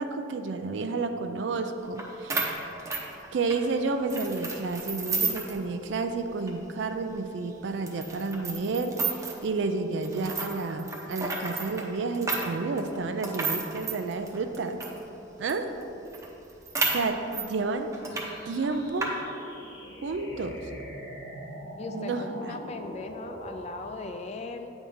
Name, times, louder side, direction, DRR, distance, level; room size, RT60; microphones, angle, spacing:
voice 1, 0.0-2.5 3.3-14.8 15.4-15.8 16.8-17.9 18.5-19.2 20.0-20.7 21.9-22.5, right 3 dB, 70° right, 7 dB, 0.4 m, -31 dB
sound 1, 2.0-2.1 2.3-3.6 4.1-5.6 5.9-6.0 6.4-6.5 7.1-7.2 7.9-9.4 10.0-15.0 15.5-15.6 15.8-15.9 16.1-17.5 17.9-18.3 18.5-19.1, right 4 dB, 15° right, 0.7 m, -32 dB
sound 2, 18.1-24.1, equal, 70° left, 1.3 m, -43 dB
voice 2, 21.8-24.7, left 3 dB, 35° left, 7 dB, 0.3 m, -38 dB
8.5 x 3.6 x 5.3 m, 2.8 s
head